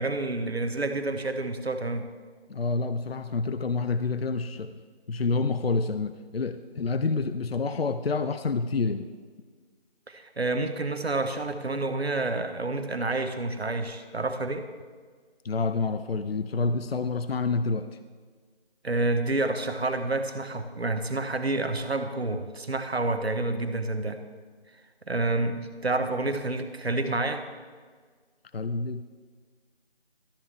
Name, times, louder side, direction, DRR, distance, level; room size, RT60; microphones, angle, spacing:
voice 1, 0.0-2.1 10.1-14.7 18.8-24.2 25.1-27.5, right 2 dB, 75° right, 8 dB, 1.1 m, -29 dB
voice 2, 2.5-4.8 5.1-9.1 15.4-17.9 28.5-29.0, left 4 dB, 70° left, 11 dB, 0.5 m, -28 dB
13.0 x 9.5 x 3.4 m, 1.5 s
figure-of-eight pair, 170°, 32 cm